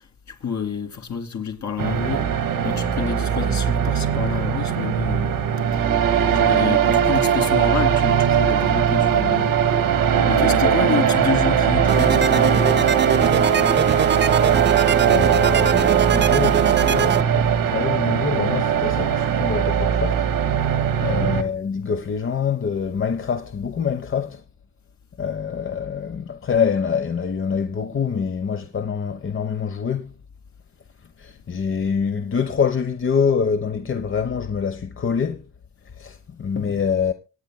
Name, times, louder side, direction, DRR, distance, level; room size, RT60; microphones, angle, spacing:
voice 1, 0.0-2.3 2.6-5.4 5.7-5.8 6.2-9.6 10.3-13.9 21.0-21.3, left 6 dB, 60° left, 2.6 m, -29 dB
sound 1, 1.8-21.4, right 8 dB, 90° right, 1.9 m, -20 dB
voice 2, 10.1-11.1 15.0-20.3 21.0-24.4 25.2-30.1 31.2-35.4 35.9-37.1, left 6 dB, 40° left, 1.0 m, -25 dB
sound 2, 11.9-17.2, right 7 dB, 35° right, 0.6 m, -21 dB
26.0 x 9.2 x 2.2 m
cardioid pair, 85°, 32 cm